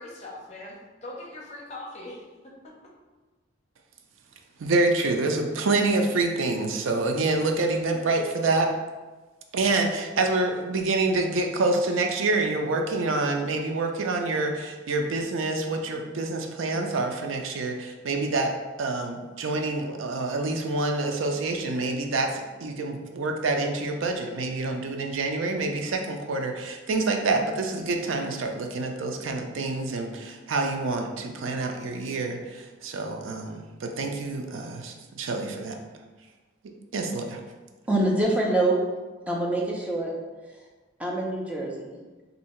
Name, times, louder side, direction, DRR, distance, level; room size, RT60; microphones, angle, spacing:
voice 1, 0.0-2.7, left 2 dB, 35° left, -3 dB, 0.7 m, -41 dB
voice 2, 4.6-8.7 9.5-18.5 18.8-35.8 36.9-37.4, right 3 dB, 80° right, 4 dB, 0.4 m, -27 dB
voice 3, 37.9-38.8 39.3-40.1 41.0-41.9, right 2 dB, 5° right, -3 dB, 0.5 m, -25 dB
2.7 x 2.7 x 4.2 m, 1.3 s
head